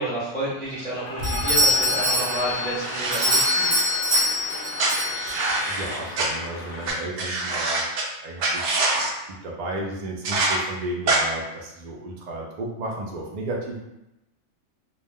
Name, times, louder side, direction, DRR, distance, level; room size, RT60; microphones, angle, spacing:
voice 1, 0.0-3.8, right 1 dB, ahead, -11 dB, 0.8 m, -30 dB
Cheering / Applause, 0.6-6.9, left 2 dB, 60° left, 0.5 m, -34 dB
Doorbell, 1.2-5.7, left 1 dB, 30° right, 0.8 m, -24 dB
sound 1, 2.8-4.2 4.8-6.3 6.8-6.9 7.2-8.0 8.4-9.1 10.2-10.6 11.1-11.2, right 2 dB, 65° right, 0.8 m, -25 dB
voice 2, 5.7-7.9 8.2-8.9 9.3-13.8, right 1 dB, 85° right, -2 dB, 0.3 m, -33 dB
2.4 x 2.1 x 3.4 m, 0.92 s
omnidirectional pair, 1.4 m